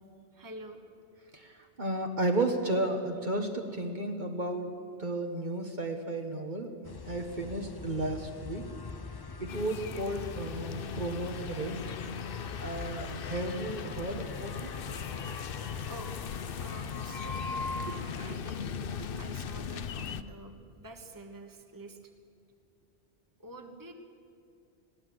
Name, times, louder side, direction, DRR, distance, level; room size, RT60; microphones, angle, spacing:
voice 1, 0.3-0.9 15.9-16.1 16.6-17.4 18.1-22.1 23.4-23.9, right 1 dB, 20° right, 4 dB, 1.4 m, -47 dB
voice 2, 1.3-8.6 9.4-11.8 12.6-14.7 17.8-17.9 19.1-19.2, right 2 dB, 45° right, 3 dB, 1.5 m, -33 dB
sound 1, 6.8-18.4, left 3 dB, 30° left, 0.4 m, -43 dB
sound 2, 9.5-20.2, left 7 dB, 55° left, 0.8 m, -39 dB
21.5 x 16.5 x 7.8 m, 2.4 s
omnidirectional pair, 1.2 m